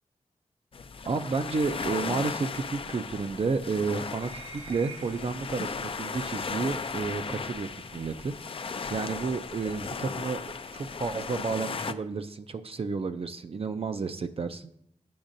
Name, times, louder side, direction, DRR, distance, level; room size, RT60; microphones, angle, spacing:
sound 1, 0.7-11.9, left 5 dB, 45° left, 0.4 m, -36 dB
voice 1, 1.1-4.3 4.7-8.3 8.9-10.4 10.7-14.7, right 4 dB, 50° right, 8 dB, 0.4 m, -31 dB
sound 2, 4.1-5.4 6.7-6.9 7.8-8.0, right 3 dB, 85° right, 2.9 m, -46 dB
8.6 x 6.2 x 2.6 m, 0.73 s
cardioid pair, 60°, 13 cm